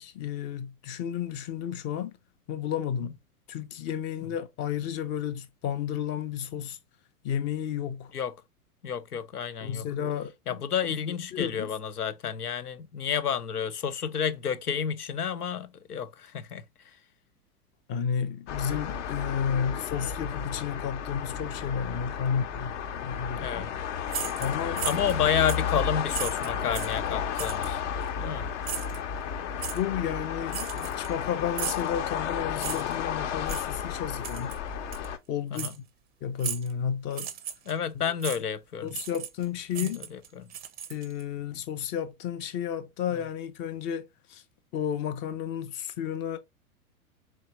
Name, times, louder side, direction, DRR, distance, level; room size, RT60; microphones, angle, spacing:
voice 1, 0.0-2.2 2.5-3.1 3.5-6.8 7.2-8.1 9.6-10.6 11.1-11.7 17.9-22.8 23.0-23.6 24.4-24.9 29.7-34.6 35.3-35.7 36.2-37.3 37.9-38.0 38.8-40.0 40.9-44.4 44.7-46.4, left 8 dB, 25° left, 0.5 m, -32 dB
voice 2, 8.8-9.8 10.5-16.6 23.4-23.7 24.8-27.8 28.2-28.5 35.5-35.8 37.7-38.9 39.8-40.5, left 8 dB, 90° left, 0.7 m, -30 dB
sound 1, 18.5-35.2, left 8 dB, 55° left, 0.8 m, -33 dB
sound 2, 24.1-25.2 25.5-25.7 26.1-27.0 27.4-27.7 28.6-29.0 29.6-29.8 30.5-31.2 31.6-31.9 32.6-33.0 33.5-33.7 34.2-34.6 34.9-35.1 35.5-35.8 36.4-36.7 37.1-37.7 38.2-38.4 38.9-39.4 39.7-41.2, right 9 dB, 20° right, 0.5 m, -36 dB
4.4 x 3.0 x 3.0 m
figure-of-eight pair, 100°, 44 cm